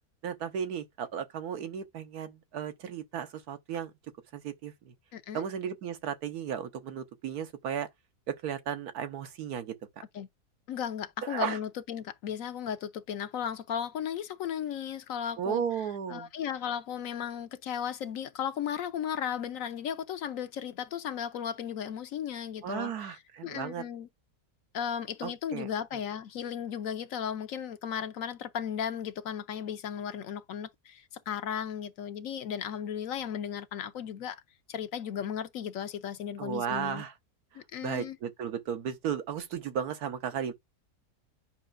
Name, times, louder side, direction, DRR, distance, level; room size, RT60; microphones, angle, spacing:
voice 1, 0.2-3.9 4.3-4.9 5.3-7.9 8.3-9.7 11.2-11.6 15.4-16.3 22.6-23.8 25.2-25.7 36.4-37.1 37.8-40.5, right 8 dB, 75° right, 1.4 m, -34 dB
voice 2, 5.1-5.4 10.1-10.3 10.7-15.6 16.1-23.1 23.4-24.1 24.7-34.4 34.7-37.0 37.5-38.2, left 8 dB, 65° left, 1.0 m, -35 dB
9.1 x 5.4 x 2.5 m
omnidirectional pair, 1.6 m